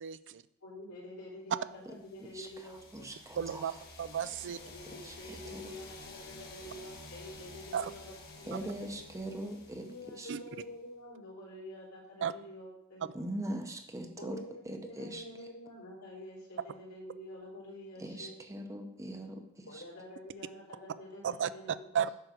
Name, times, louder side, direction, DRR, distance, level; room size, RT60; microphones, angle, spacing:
voice 1, 0.0-0.4 3.4-3.7 4.0-4.6 7.7-7.9 10.3-10.4 12.2-12.3 21.2-21.5 21.9-22.1, right 8 dB, 55° right, 14 dB, 0.4 m, -33 dB
voice 2, 0.6-3.1 4.6-9.0 9.8-13.1 14.2-18.3 19.7-21.9, left 1 dB, 75° left, -3 dB, 3.5 m, -48 dB
sound 1, 2.0-10.7, left 3 dB, 45° left, 1.6 m, -51 dB
voice 3, 2.3-3.8 5.0-5.6 8.5-9.9 10.2-10.3 13.1-15.2 18.0-19.8, right 1 dB, 15° right, 4 dB, 0.9 m, -41 dB
9.3 x 6.1 x 5.0 m, 0.81 s
head